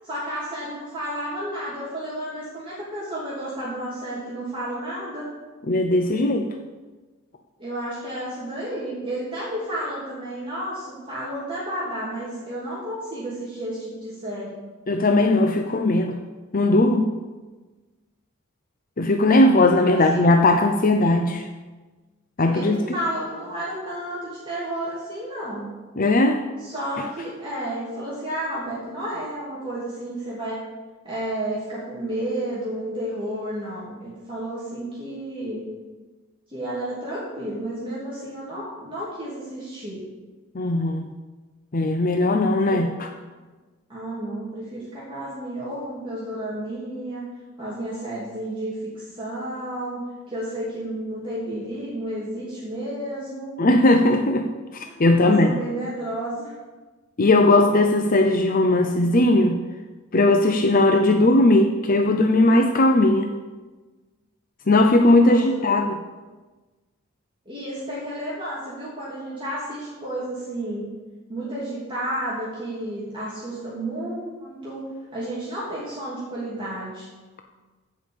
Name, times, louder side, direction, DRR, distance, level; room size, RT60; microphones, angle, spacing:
voice 1, 0.0-5.3 7.6-14.6 19.9-20.3 22.5-25.7 26.6-30.6 31.0-35.6 36.5-40.0 42.7-42.9 43.9-47.2 47.6-50.0 50.3-53.5 54.8-54.9 55.2-56.5 65.2-65.8 67.4-70.9 71.3-74.9 75.1-77.1, right 1 dB, 25° right, -8 dB, 3.0 m, -31 dB
voice 2, 5.7-6.5 14.9-16.2 16.5-17.1 19.0-21.5 22.4-22.8 26.0-26.4 40.5-41.1 41.7-43.1 53.6-54.5 54.7-55.6 57.2-59.6 60.1-63.3 64.7-65.9, left 2 dB, 45° left, 4 dB, 0.7 m, -18 dB
15.5 x 5.5 x 7.2 m, 1.3 s
head